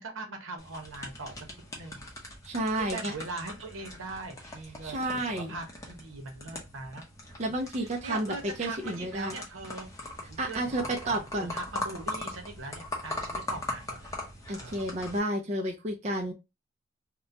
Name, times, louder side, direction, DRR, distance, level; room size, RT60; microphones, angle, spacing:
voice 1, 0.0-2.1 2.7-7.0 7.8-9.9 10.4-11.2 11.5-14.2 14.6-14.8, right 3 dB, 85° right, 4 dB, 0.8 m, -41 dB
sound 1, 0.6-15.2, left 2 dB, 15° left, 0.6 m, -41 dB
voice 2, 2.4-3.1 4.8-5.5 7.4-8.3 8.6-9.4 10.4-11.5 14.5-16.3, right 1 dB, 35° right, 2 dB, 0.4 m, -31 dB
2.9 x 2.1 x 2.5 m, 0.24 s
head